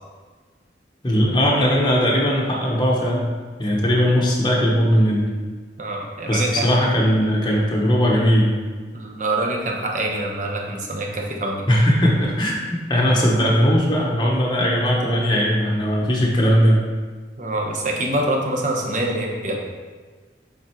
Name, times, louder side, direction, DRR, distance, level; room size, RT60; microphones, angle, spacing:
voice 1, 1.0-3.3 3.6-5.2 6.3-8.5 11.7-12.6 12.9-16.8, equal, 25° left, -3 dB, 1.0 m, -18 dB
voice 2, 5.8-6.7 8.9-11.6 17.4-19.6, right 1 dB, 45° right, 0 dB, 1.0 m, -25 dB
7.8 x 3.8 x 4.5 m, 1.4 s
head